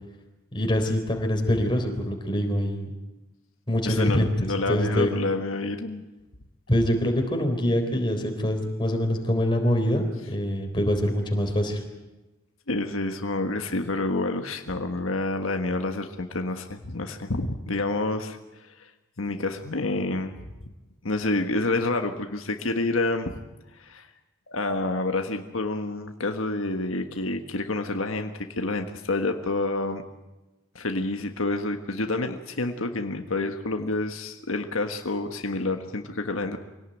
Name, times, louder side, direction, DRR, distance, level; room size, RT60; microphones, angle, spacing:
voice 1, 0.5-2.9 3.7-5.1 6.7-11.8, equal, 25° left, 3 dB, 3.9 m, -24 dB
voice 2, 3.8-6.0 12.7-18.9 19.2-20.3 21.0-23.4 23.7-24.1 24.5-28.3 28.6-30.0 30.7-36.6, left 2 dB, 80° left, 5 dB, 1.5 m, -28 dB
25.0 x 18.0 x 9.1 m, 1.1 s
head